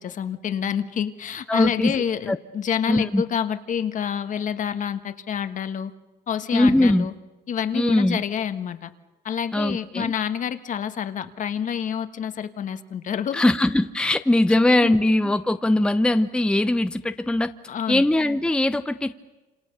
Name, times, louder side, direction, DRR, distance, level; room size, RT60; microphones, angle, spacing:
voice 1, 0.0-5.9 6.3-7.1 7.5-8.9 9.2-13.5 14.5-15.0 17.7-18.1, left 8 dB, 50° left, 10 dB, 1.5 m, -28 dB
voice 2, 1.5-1.9 2.3-2.4 2.9-3.2 6.5-7.1 7.7-8.2 9.5-10.1 13.3-17.5 17.9-19.1, left 1 dB, 5° left, 10 dB, 0.8 m, -21 dB
27.5 x 27.5 x 6.8 m, 1.1 s
cardioid pair, 110°, 17 cm